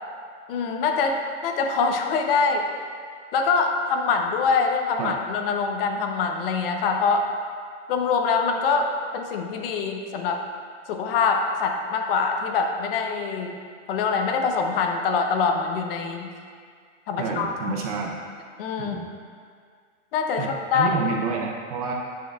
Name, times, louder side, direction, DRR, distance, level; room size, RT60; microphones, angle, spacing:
voice 1, 0.5-2.7 3.3-7.3 7.9-10.4 10.9-13.6 13.9-16.3 17.1-17.7 18.6-19.0 20.1-21.0, left 5 dB, 45° left, 4 dB, 0.7 m, -24 dB
voice 2, 17.2-18.1 18.8-19.1 20.4-21.9, right 5 dB, 30° right, 0 dB, 0.4 m, -29 dB
9.2 x 6.9 x 2.3 m, 2.1 s
hypercardioid pair, 150°, 38 cm